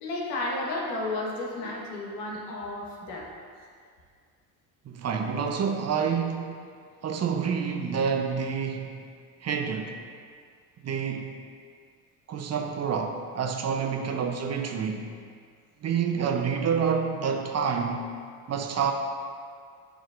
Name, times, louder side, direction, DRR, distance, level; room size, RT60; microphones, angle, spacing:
voice 1, 0.0-3.3, left 2 dB, 80° left, -3 dB, 1.3 m, -32 dB
voice 2, 4.8-6.5 7.0-9.0 9.4-9.9 10.8-11.3 12.3-15.2 15.8-18.1 18.5-18.9, right 6 dB, 40° right, 4 dB, 0.7 m, -28 dB
8.1 x 5.0 x 2.5 m, 2.1 s
hypercardioid pair, 65°, 42 cm